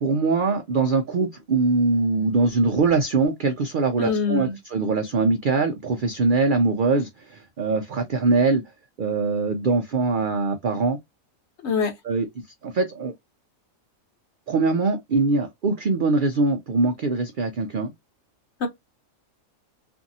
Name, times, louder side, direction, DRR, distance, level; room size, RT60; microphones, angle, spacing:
voice 1, 0.0-8.6 9.0-11.0 12.1-12.3 12.6-13.1 14.5-17.9, right 3 dB, 70° right, 0.4 m, -22 dB
voice 2, 4.0-4.6 11.6-11.9 18.6-18.7, left 5 dB, 60° left, 1.0 m, -23 dB
2.6 x 2.5 x 2.6 m
omnidirectional pair, 1.4 m